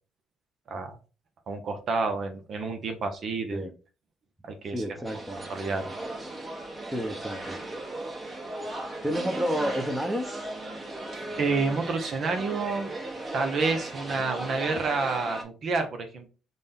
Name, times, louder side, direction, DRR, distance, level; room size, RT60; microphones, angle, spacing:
voice 1, 1.5-3.7 4.4-4.8 5.3-5.9 11.4-12.9 13.3-16.3, right 4 dB, 55° right, 6 dB, 0.7 m, -29 dB
voice 2, 4.7-5.4 6.9-7.6 9.0-10.3, equal, 5° right, 6 dB, 0.7 m, -30 dB
sound 1, 5.0-15.4, right 2 dB, 30° right, 1.2 m, -37 dB
3.8 x 2.2 x 3.6 m, 0.34 s
supercardioid pair, 65°, 0 cm